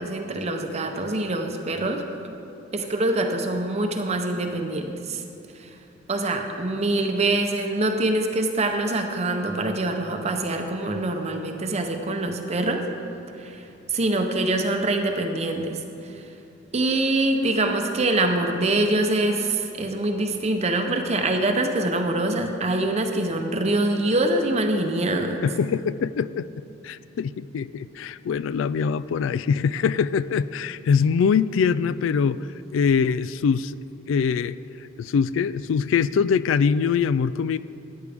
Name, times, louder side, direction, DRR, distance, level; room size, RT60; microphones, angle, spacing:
voice 1, 0.0-2.0 2.7-5.2 6.1-12.8 13.4-13.6 13.9-15.8 16.7-25.4, right 2 dB, 35° right, 4 dB, 0.7 m, -24 dB
voice 2, 25.4-26.5 26.8-32.4 32.7-33.8 34.1-34.6 35.0-37.6, left 6 dB, 75° left, 17 dB, 0.3 m, -23 dB
13.5 x 9.6 x 3.5 m, 2.8 s
head